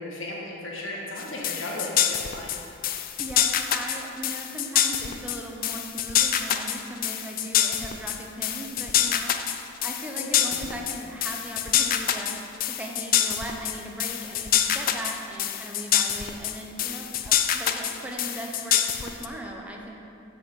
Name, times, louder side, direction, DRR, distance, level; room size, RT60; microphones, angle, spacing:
voice 1, 0.0-2.5 7.8-7.9 10.2-10.7 17.3-17.4, left 1 dB, 75° left, -2 dB, 1.6 m, -35 dB
sound 1, 1.2-19.3, left 10 dB, 45° left, 0.4 m, -26 dB
voice 2, 3.2-12.3 12.6-19.9, right 1 dB, 5° right, 0 dB, 0.8 m, -38 dB
7.1 x 5.4 x 6.9 m, 2.7 s
head